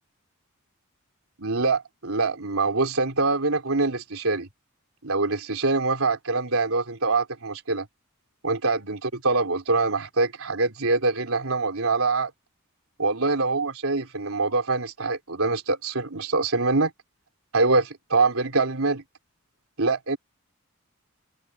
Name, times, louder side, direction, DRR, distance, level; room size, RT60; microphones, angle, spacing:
voice 1, 1.4-4.5 5.0-7.9 8.4-12.3 13.0-16.9 17.5-19.0 19.8-20.2, right 3 dB, 70° right, 3.6 m, -24 dB
open air
head